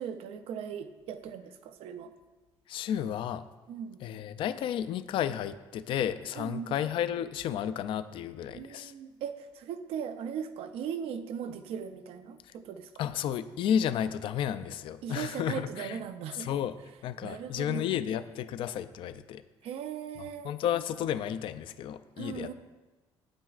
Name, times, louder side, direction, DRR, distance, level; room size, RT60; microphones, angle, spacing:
voice 1, 0.0-2.1 3.7-4.0 6.4-6.8 8.5-12.9 15.0-16.5 17.2-17.9 19.6-20.5 22.2-22.5, right 8 dB, 75° right, 9 dB, 0.6 m, -38 dB
voice 2, 2.7-3.4 4.0-8.9 13.0-16.0 16.4-16.8 17.0-19.4 20.4-22.5, left 9 dB, 60° left, 12 dB, 0.4 m, -32 dB
9.0 x 8.8 x 2.4 m, 1.2 s
cardioid pair, 150°, 10 cm